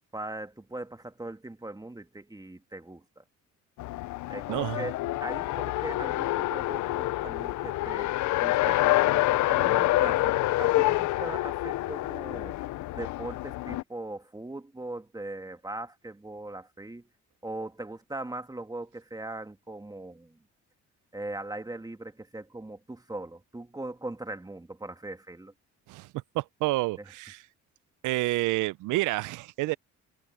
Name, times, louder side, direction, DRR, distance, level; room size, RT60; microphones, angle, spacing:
voice 1, 0.1-3.2 4.3-10.3 10.6-12.6 12.9-17.1 17.4-20.4 21.1-25.5 27.0-27.1, right 2 dB, 10° right, 2.0 m, -40 dB
Race car auto racing, 3.8-13.8, left 17 dB, 75° left, 0.5 m, -27 dB
voice 2, 4.5-4.9 25.9-26.1 26.3-27.4 28.0-29.8, right 19 dB, 90° right, 0.5 m, -29 dB
cardioid pair, 90°, 30 cm